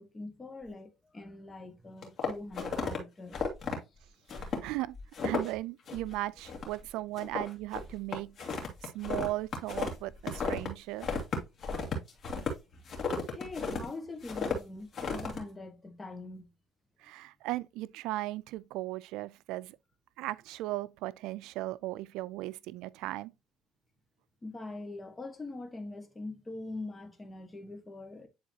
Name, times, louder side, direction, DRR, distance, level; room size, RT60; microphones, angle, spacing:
voice 1, 0.0-3.4 13.3-16.5 24.4-28.3, left 2 dB, 20° left, 1.5 m, -43 dB
sound 1, 2.0-3.0 3.3-3.8 4.3-4.7 4.9-5.6 5.9-6.2 6.4-6.9 7.2-10.7 11.0-13.9 14.2-14.6 14.9-15.4, left 5 dB, 45° left, 2.5 m, -34 dB
voice 2, 4.4-5.0 5.2-11.1 17.0-19.8 20.2-23.3, right 17 dB, 85° right, 0.3 m, -37 dB
10.5 x 3.9 x 2.8 m
cardioid pair, 115°, 0 cm